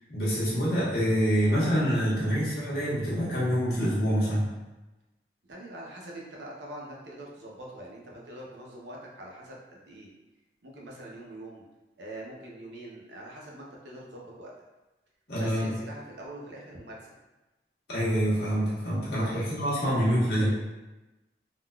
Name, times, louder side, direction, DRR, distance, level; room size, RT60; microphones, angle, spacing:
voice 1, 0.1-4.5 15.3-15.7 17.9-20.5, equal, 65° left, -8 dB, 1.2 m, -26 dB
voice 2, 5.4-10.1 10.6-11.6 12.0-14.5 15.4-17.1 19.1-19.5 20.0-20.5, right 1 dB, 85° right, -3 dB, 0.7 m, -44 dB
3.8 x 2.4 x 2.2 m, 1.1 s
head